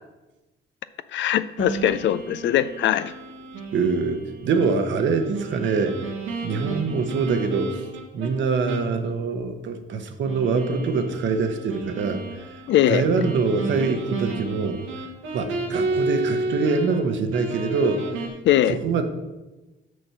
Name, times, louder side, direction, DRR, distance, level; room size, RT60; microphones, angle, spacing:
voice 1, 1.1-3.1 12.7-13.0 18.4-18.8, left 11 dB, 70° left, 15 dB, 0.4 m, -21 dB
sound 1, 1.6-8.3 8.7-8.9 9.3-9.4 10.3-17.0 17.3-18.3, right 3 dB, 85° right, 1.4 m, -32 dB
voice 2, 3.7-6.0 6.4-7.9 8.1-12.2 12.9-14.8 15.3-18.0 18.7-19.0, right 4 dB, 70° right, 7 dB, 1.0 m, -24 dB
6.3 x 6.0 x 5.7 m, 1.1 s
cardioid pair, 90°, 20 cm